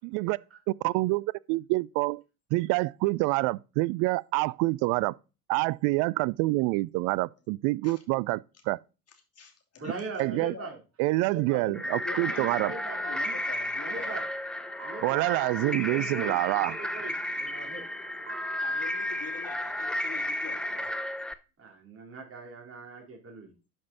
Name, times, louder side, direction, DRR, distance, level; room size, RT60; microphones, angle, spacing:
voice 1, 0.0-0.4 0.8-2.2 2.5-5.1 5.5-8.8 10.2-10.5 11.0-12.7 15.0-16.8, right 22 dB, 45° right, 0.4 m, -27 dB
voice 2, 9.1-10.7 11.5-14.2 18.6-20.9, left 5 dB, 30° left, 2.9 m, -45 dB
voice 3, 9.8-10.8 11.2-11.6 12.1-13.4 13.8-14.3 14.8-15.3 15.6-17.1 17.4-17.8 21.6-23.5, right 3 dB, 30° right, 3.6 m, -41 dB
sound 1, 11.7-21.3, left 1 dB, ahead, 0.6 m, -33 dB
Piano, 13.0-20.0, right 4 dB, 70° right, 1.9 m, -48 dB
11.5 x 5.3 x 4.1 m
figure-of-eight pair, 70°, 47 cm